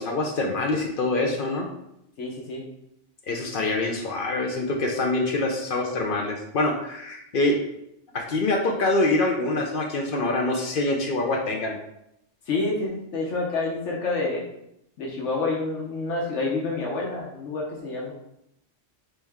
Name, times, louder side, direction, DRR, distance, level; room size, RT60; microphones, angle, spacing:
voice 1, 0.0-1.7 3.3-7.6 8.1-11.7, left 2 dB, 55° left, 1 dB, 0.7 m, -25 dB
voice 2, 2.2-2.6 12.5-14.4 15.0-18.1, left 3 dB, 80° left, -2 dB, 1.2 m, -28 dB
4.1 x 3.3 x 3.5 m, 0.80 s
omnidirectional pair, 1.2 m